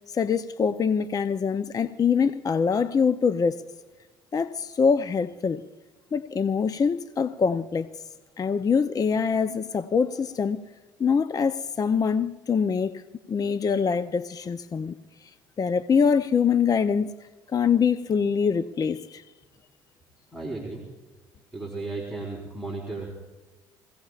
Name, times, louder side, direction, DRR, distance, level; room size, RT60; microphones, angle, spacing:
voice 1, 0.1-3.6 4.3-5.6 6.1-7.9 8.4-10.6 11.0-13.0 13.3-14.9 15.6-17.1 17.5-19.2, left 6 dB, 35° left, 12 dB, 0.6 m, -24 dB
voice 2, 20.3-20.8 21.5-23.1, right 3 dB, 5° left, -2 dB, 4.1 m, -34 dB
26.5 x 16.5 x 2.5 m, 1.2 s
supercardioid pair, 75°, 11 cm